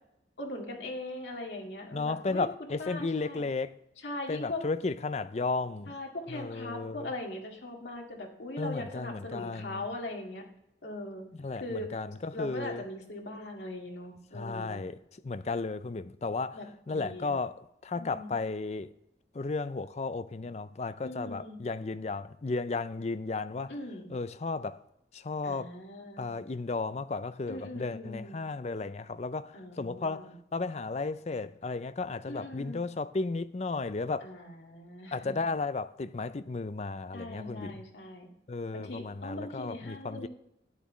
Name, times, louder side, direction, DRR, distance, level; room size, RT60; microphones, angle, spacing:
voice 1, 0.4-3.4 4.0-4.7 5.9-10.4 10.8-11.3 11.6-11.9 12.3-14.8 16.5-17.3 18.0-18.4 21.0-21.6 23.7-24.1 25.4-26.3 27.5-28.5 29.5-30.3 32.3-32.8 34.2-35.5 37.1-38.3 38.7-40.3, left 1 dB, 80° left, 2.1 m, -40 dB
voice 2, 1.9-3.8 4.3-5.9 6.3-7.1 8.6-9.8 11.4-12.8 14.3-16.6 16.9-18.9 19.3-23.7 24.1-24.8 25.1-25.7 26.2-34.3 35.1-37.8 38.5-40.3, left 3 dB, 40° left, 0.4 m, -34 dB
12.0 x 9.3 x 3.1 m
head